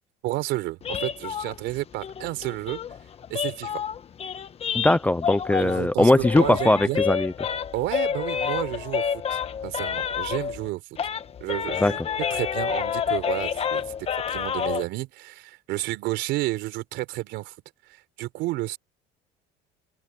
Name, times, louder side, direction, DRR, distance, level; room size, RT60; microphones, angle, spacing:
voice 1, 0.2-2.8 3.3-3.8 5.6-7.0 7.7-10.8 11.4-12.0 12.3-13.8 14.3-17.5 17.9-18.8, right 18 dB, 70° right, 4.1 m, -31 dB
sound 1, 0.8-5.9 6.2-10.7 11.0-14.8, left 7 dB, 30° left, 1.3 m, -29 dB
voice 2, 4.7-7.3 11.8-11.9, left 2 dB, 10° left, 0.5 m, -20 dB
open air
cardioid pair, 130°, 19 cm